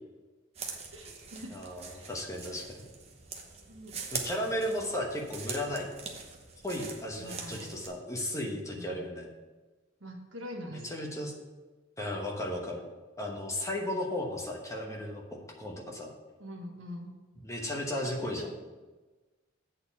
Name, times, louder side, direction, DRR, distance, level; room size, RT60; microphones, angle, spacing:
sound 1, 0.5-7.9, right 5 dB, 30° right, 0.9 m, -43 dB
voice 1, 0.9-1.6 2.0-2.1 3.7-4.0 7.2-7.7 8.7-9.0 10.0-10.9 16.4-17.1 18.2-18.5, equal, 80° right, 1 dB, 1.5 m, -44 dB
voice 2, 1.5-2.7 4.1-5.9 6.6-9.3 10.7-11.3 12.0-12.8 13.2-16.1 17.4-18.5, left 1 dB, 15° left, 0 dB, 1.0 m, -35 dB
7.9 x 4.4 x 6.9 m, 1.2 s
head